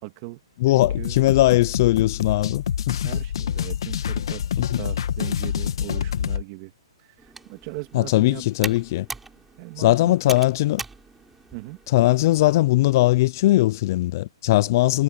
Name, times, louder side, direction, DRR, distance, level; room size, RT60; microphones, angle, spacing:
voice 1, 0.0-0.4 0.7-1.2 3.0-4.4 4.8-6.7 7.2-8.8 9.6-10.3 11.5-11.8 14.5-14.7, right 23 dB, 30° right, 2.7 m, -38 dB
voice 2, 0.6-3.1 4.6-4.8 7.9-9.1 9.8-10.8 11.9-15.0, left 17 dB, 40° left, 0.5 m, -20 dB
sound 1, 0.8-6.4, left 9 dB, 60° left, 1.9 m, -27 dB
Computer keyboard, 7.2-12.3, right 4 dB, 5° right, 4.8 m, -40 dB
hypercardioid pair, 160°, 3 cm